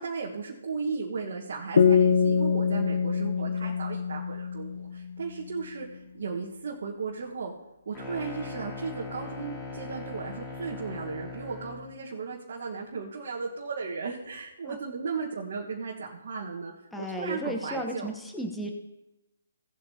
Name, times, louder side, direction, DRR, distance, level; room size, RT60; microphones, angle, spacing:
voice 1, 0.0-7.5 7.8-18.1, right 4 dB, 60° right, -3 dB, 1.5 m, -36 dB
sound 1, 1.8-5.2, left 6 dB, 65° left, 0.7 m, -24 dB
sound 2, 7.9-11.9, left 3 dB, 20° left, 2.9 m, -40 dB
voice 2, 16.9-18.7, right 1 dB, 5° left, 2 dB, 1.1 m, -34 dB
17.5 x 8.0 x 2.9 m, 0.98 s
hypercardioid pair, 150°, 0 cm